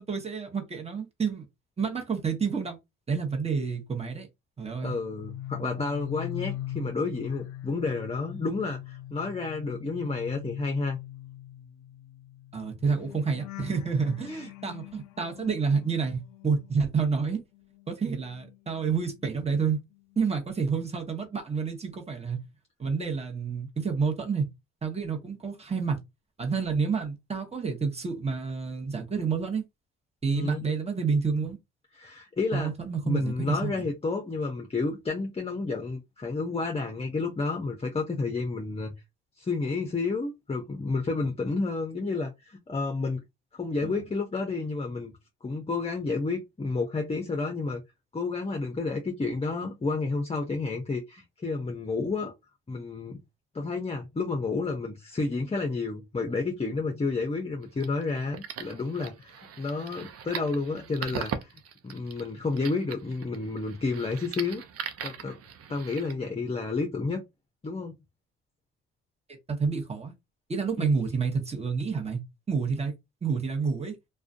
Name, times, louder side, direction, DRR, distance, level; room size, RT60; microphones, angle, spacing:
voice 1, 0.0-1.5 1.8-2.8 3.1-4.3 4.6-5.0 12.5-17.4 17.9-19.8 20.2-22.4 22.8-24.5 24.8-26.0 26.4-29.6 30.2-31.6 32.5-33.9 43.8-44.0 69.5-70.1 70.5-72.2 72.5-72.9 73.2-74.0, right 5 dB, 20° right, 1.0 m, -29 dB
voice 2, 4.8-11.0 14.3-14.5 30.3-30.7 31.9-32.7 33.0-38.9 39.4-43.2 43.5-45.1 45.4-47.8 48.1-52.3 52.7-53.2 53.5-64.6 65.0-65.4 65.7-67.2 67.6-68.0 70.8-70.9, left 3 dB, 20° left, 0.6 m, -30 dB
sound 1, 5.0-17.2 17.5-19.6 19.9-20.3, left 14 dB, 75° left, 0.4 m, -42 dB
sound 2, 57.6-66.1, right 8 dB, 55° right, 0.6 m, -40 dB
2.4 x 2.2 x 2.5 m
supercardioid pair, 60°, 29 cm